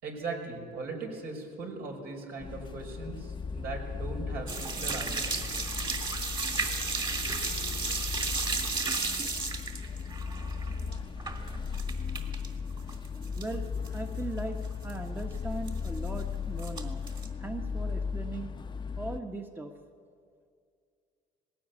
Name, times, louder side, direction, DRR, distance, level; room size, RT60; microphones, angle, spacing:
voice 1, 0.0-5.6, right 3 dB, 70° right, 1 dB, 5.6 m, -39 dB
sound 1, 2.4-19.2, left 5 dB, 25° left, 0.9 m, -37 dB
sound 2, 4.5-12.5 12.8-13.6 13.8-13.9 14.4-14.5 14.6-14.9 15.7-16.2 16.6-17.3, right 3 dB, 30° right, 2.8 m, -33 dB
voice 2, 13.4-17.1 17.4-18.5 19.0-19.7, right 2 dB, 10° right, 4 dB, 1.3 m, -39 dB
19.5 x 17.0 x 8.5 m, 2.3 s
cardioid pair, 110°, 17 cm